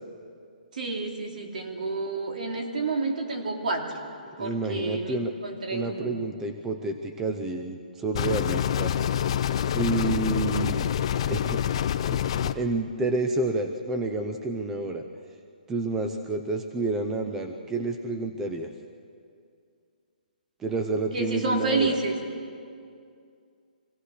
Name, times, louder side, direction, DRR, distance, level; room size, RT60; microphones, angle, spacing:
voice 1, 0.7-4.0 4.4-6.2 21.1-22.2, right 3 dB, 60° right, 2 dB, 3.2 m, -29 dB
voice 2, 4.4-5.3 5.7-8.9 9.6-10.9 11.3-11.6 12.1-15.0 15.7-18.7 20.6-22.0, right 3 dB, 5° right, 6 dB, 0.5 m, -29 dB
sound 1, 8.1-12.5, left 9 dB, 35° left, 0.7 m, -26 dB
25.0 x 16.5 x 6.6 m, 2.4 s
hypercardioid pair, 170°, 5 cm